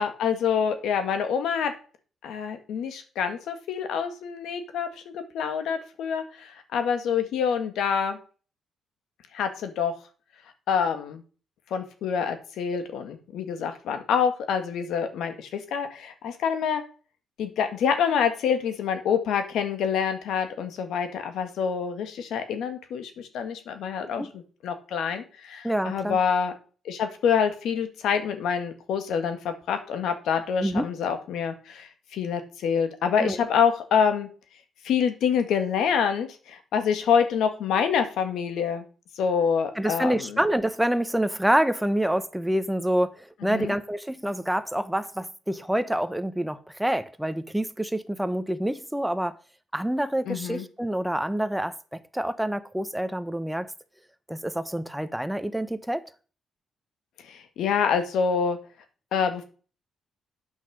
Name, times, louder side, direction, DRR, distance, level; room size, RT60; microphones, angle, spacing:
voice 1, 0.0-1.7 2.2-8.2 9.3-9.9 10.7-11.2 11.7-16.8 17.4-26.5 26.9-34.3 34.8-38.8 39.2-40.4 43.5-43.7 50.3-50.7 57.3-58.6 59.1-59.4, left 7 dB, 80° left, 1.8 m, -26 dB
voice 2, 25.6-26.2 30.6-30.9 33.2-33.4 39.8-43.1 43.4-49.3 49.7-53.7 54.3-56.0, right 1 dB, 5° right, 1.0 m, -27 dB
9.1 x 6.0 x 6.3 m
cardioid pair, 90°, 0 cm